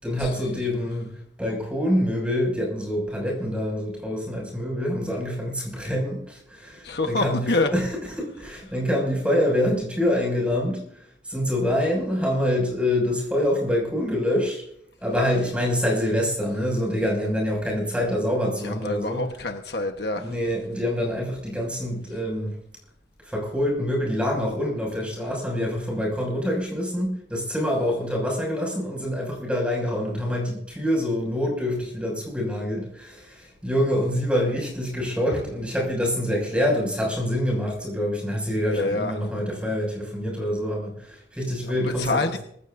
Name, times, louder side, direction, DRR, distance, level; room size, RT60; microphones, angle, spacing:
voice 1, 0.0-7.9 8.2-14.6 15.0-19.2 20.2-22.6 23.2-42.2, equal, 5° right, -1 dB, 6.5 m, -26 dB
voice 2, 6.8-7.7 18.6-20.3 38.7-39.2 41.7-42.4, left 2 dB, 60° left, 5 dB, 1.3 m, -27 dB
25.5 x 15.5 x 2.7 m, 0.69 s
head